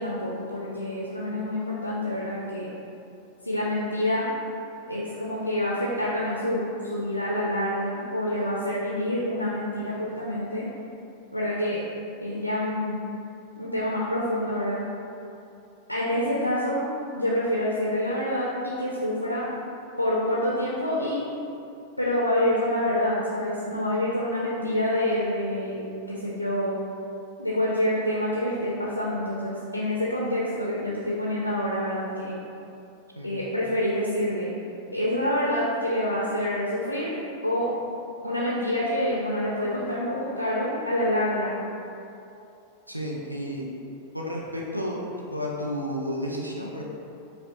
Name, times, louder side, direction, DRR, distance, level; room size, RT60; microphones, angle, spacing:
voice 1, 0.0-2.7 3.4-4.3 4.9-10.7 11.3-11.8 12.2-13.0 13.6-14.8 15.9-16.9 17.1-19.5 20.0-21.2 22.0-25.8 26.1-26.8 27.4-32.4 33.2-34.5 34.9-37.2 37.4-37.7 38.2-41.5, left 1 dB, 90° left, -5 dB, 0.4 m, -27 dB
voice 2, 42.9-43.6 44.1-45.0 45.3-46.8, equal, 90° right, -3 dB, 0.4 m, -31 dB
4.9 x 2.0 x 2.8 m, 2.7 s
figure-of-eight pair, 90°, 0 cm